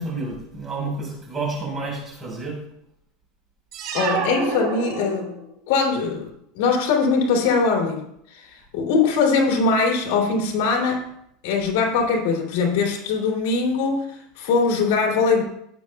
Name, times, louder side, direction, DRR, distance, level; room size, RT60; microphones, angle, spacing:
voice 1, 0.0-2.6, right 3 dB, 20° right, -1 dB, 4.4 m, -30 dB
sound 1, 3.7-5.6, right 5 dB, 50° right, 4.0 m, -28 dB
voice 2, 3.9-5.4 5.7-6.3 6.5-8.0 8.3-11.0 11.4-15.4, left 4 dB, 70° left, 0 dB, 2.8 m, -21 dB
16.5 x 8.7 x 2.3 m, 0.75 s
supercardioid pair, 150°, 0 cm